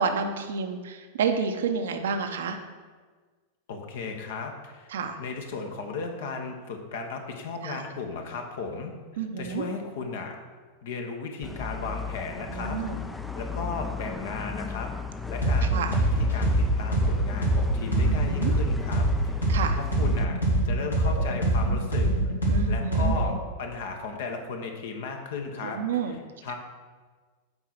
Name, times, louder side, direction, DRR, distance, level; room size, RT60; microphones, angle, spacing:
voice 1, 0.0-2.6 4.9-5.2 7.6-7.8 9.2-9.6 12.5-13.0 15.7-15.9 18.1-18.5 19.5-19.8 22.5-23.1 25.6-26.2, right 5 dB, 60° right, 6 dB, 0.8 m, -29 dB
voice 2, 3.7-4.9 5.2-10.4 10.8-12.8 13.3-14.9 15.3-20.4 20.6-22.1 22.7-25.8 26.1-26.5, left 4 dB, 55° left, 4 dB, 1.0 m, -35 dB
sound 1, 11.4-20.3, left 3 dB, 5° left, 0.5 m, -34 dB
sound 2, 15.4-15.6 15.9-19.6 19.9-23.3, right 1 dB, 80° left, 2.0 m, -24 dB
7.9 x 4.7 x 5.9 m, 1.4 s
figure-of-eight pair, 90°, 0 cm